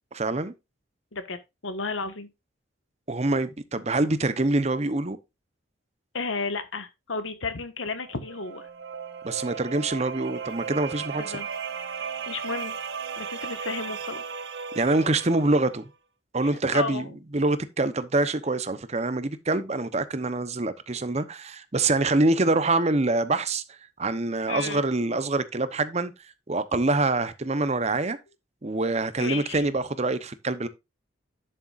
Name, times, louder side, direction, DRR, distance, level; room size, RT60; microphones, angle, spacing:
voice 1, 0.1-0.5 3.1-5.2 9.2-11.2 14.7-15.8 16.3-26.1 26.5-28.2 28.6-30.7, right 2 dB, 35° right, 0.8 m, -25 dB
voice 2, 1.1-2.3 6.1-8.7 11.2-11.5 12.0-12.8 13.2-14.2 16.4-17.1 24.5-24.8 29.2-29.6, left 4 dB, 85° left, 1.5 m, -33 dB
sound 1, 7.9-15.7, right 6 dB, 60° right, 1.3 m, -36 dB
11.0 x 6.8 x 2.5 m
head